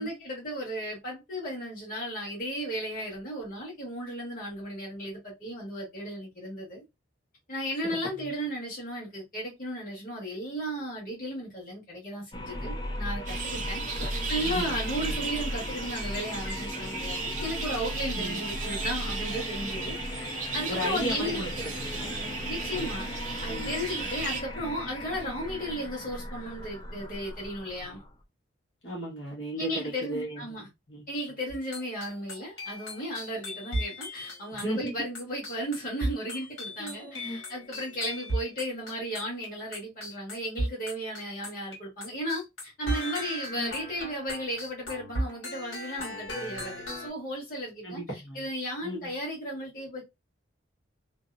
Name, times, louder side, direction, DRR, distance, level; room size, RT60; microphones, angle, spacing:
voice 1, 0.0-6.8 7.5-13.8 14.3-20.0 20.5-21.4 22.5-23.1 23.4-28.0 29.6-30.7 31.1-48.0 48.3-50.0, equal, 45° left, 1.4 m, -35 dB
sound 1, 12.3-28.2, left 1 dB, 20° left, 0.3 m, -37 dB
sound 2, 13.3-24.4, right 4 dB, 40° right, 0.5 m, -36 dB
voice 2, 14.4-15.2 18.2-18.4 20.7-21.5 22.7-22.9 23.5-23.9 28.8-31.1 34.5-34.9 36.8-37.4 43.5-43.7 47.8-48.4 48.8-49.1, right 1 dB, 70° left, 1.2 m, -36 dB
sound 3, 31.5-41.8 42.0-47.1, equal, 85° left, 1.5 m, -37 dB
2.7 x 2.0 x 2.4 m
head